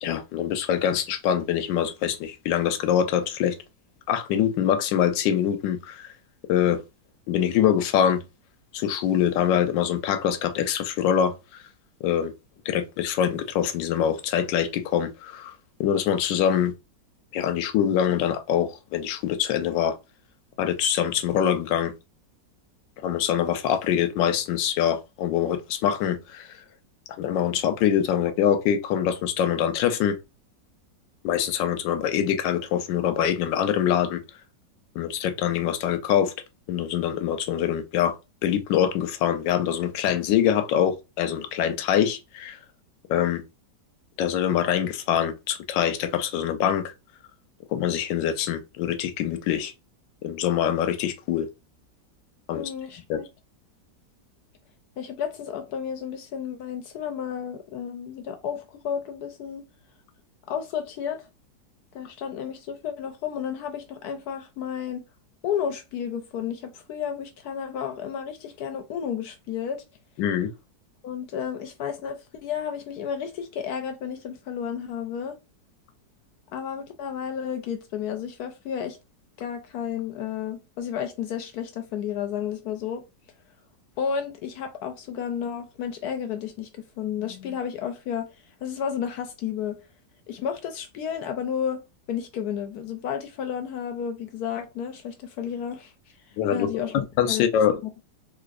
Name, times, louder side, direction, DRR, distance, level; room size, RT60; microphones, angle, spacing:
voice 1, 0.0-3.6 4.1-6.1 6.5-6.8 7.3-8.2 8.7-11.6 12.0-12.3 12.7-15.5 15.8-16.7 17.3-20.0 20.6-21.9 23.0-26.5 27.2-30.2 31.2-34.2 35.0-36.3 36.7-42.6 43.1-43.4 44.2-46.9 47.7-49.7 50.2-51.5 52.5-52.7 53.1-53.2 70.2-70.5 96.4-97.8, left 9 dB, 85° left, 1.3 m, -24 dB
voice 2, 52.5-53.3 55.0-59.6 60.5-61.3 61.9-65.0 65.4-69.8 71.0-75.4 76.5-79.0 79.4-83.0 84.0-88.3 88.6-89.8 90.3-91.8 92.1-95.9 96.5-97.0 97.3-97.4 97.8-97.9, left 8 dB, 70° left, 1.0 m, -32 dB
4.0 x 2.6 x 2.5 m
omnidirectional pair, 1.9 m